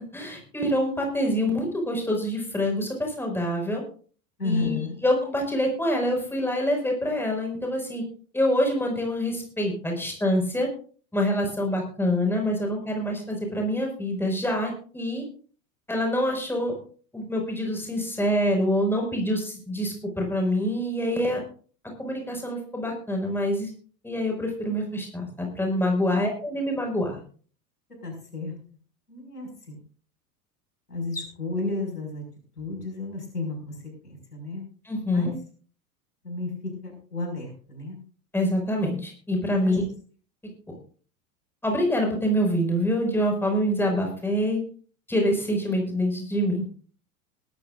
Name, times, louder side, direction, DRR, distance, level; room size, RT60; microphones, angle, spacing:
voice 1, 0.0-3.8 4.4-4.7 5.0-8.0 8.3-10.7 11.1-15.2 15.9-16.7 17.1-21.4 22.0-23.7 24.0-27.2 34.8-35.3 38.3-39.8 41.6-44.6 45.1-46.9, equal, 5° left, 1 dB, 5.3 m, -26 dB
voice 2, 4.4-4.9 28.0-28.5 29.1-29.8 30.9-32.2 32.6-33.7 34.0-34.6 35.1-35.3 36.2-38.0 39.6-39.8, left 3 dB, 90° left, 2 dB, 5.7 m, -32 dB
20.0 x 13.5 x 2.5 m, 0.42 s
figure-of-eight pair, 85°, 45 cm